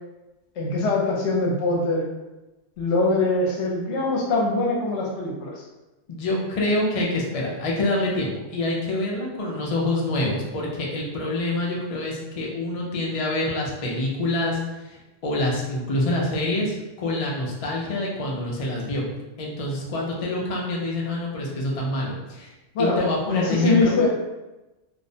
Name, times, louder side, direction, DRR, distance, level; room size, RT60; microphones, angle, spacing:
voice 1, 0.6-2.1 2.8-5.6 22.7-23.0 23.3-24.1, left 2 dB, 75° left, -2 dB, 0.9 m, -23 dB
voice 2, 6.1-19.0 19.4-22.5 22.8-23.9, left 2 dB, 50° left, -3 dB, 0.4 m, -26 dB
2.5 x 2.0 x 2.6 m, 1.0 s
omnidirectional pair, 1.2 m